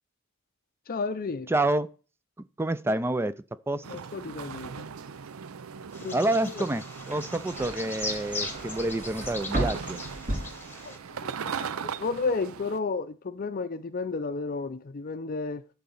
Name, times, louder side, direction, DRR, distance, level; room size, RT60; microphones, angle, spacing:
voice 1, 0.9-1.5 3.9-4.9 6.0-6.2 6.4-6.7 10.9-15.6, left 4 dB, 45° left, 0.5 m, -32 dB
voice 2, 1.5-1.9 2.6-3.3 3.7-3.8 6.1-10.0, right 1 dB, 10° right, 0.4 m, -28 dB
sound 1, 3.8-12.8, right 6 dB, 85° right, 0.5 m, -39 dB
Bird vocalization bird call bird song, 5.9-11.0, left 2 dB, 10° left, 1.5 m, -39 dB
sound 2, 7.1-11.3 11.6-12.1, right 1 dB, 40° right, 3.7 m, -35 dB
11.5 x 4.0 x 7.0 m
head